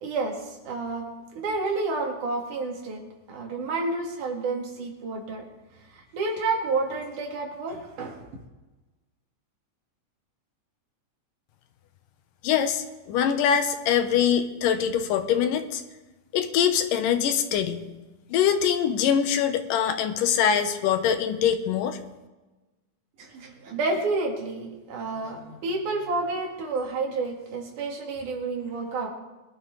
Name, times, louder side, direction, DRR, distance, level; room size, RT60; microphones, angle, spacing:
voice 1, 0.0-5.4 5.9-8.3 23.2-29.1, right 3 dB, 70° right, 1 dB, 3.4 m, -30 dB
voice 2, 12.4-15.8 16.3-17.9 18.3-22.0, left 8 dB, 85° left, 8 dB, 2.6 m, -23 dB
21.5 x 11.5 x 3.3 m, 1.1 s
omnidirectional pair, 3.8 m